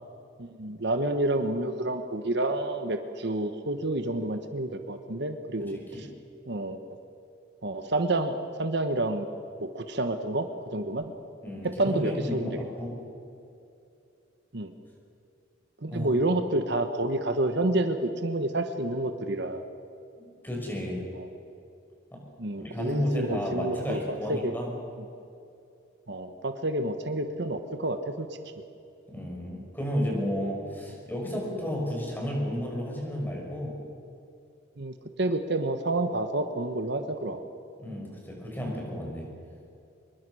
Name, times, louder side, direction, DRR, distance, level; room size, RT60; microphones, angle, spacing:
voice 1, 0.4-6.1 6.5-6.8 7.6-9.3 9.6-11.1 11.6-12.6 14.5-14.7 15.8-19.6 21.1-21.3 22.4-24.6 26.1-28.3 34.8-37.4, right 2 dB, 60° right, 7 dB, 1.3 m, -29 dB
voice 2, 5.6-6.1 11.4-13.0 15.9-16.1 20.2-21.0 22.1-22.2 22.6-24.7 29.1-33.8 37.8-39.3, equal, 10° left, -1 dB, 6.2 m, -32 dB
25.0 x 22.0 x 6.3 m, 2.6 s
head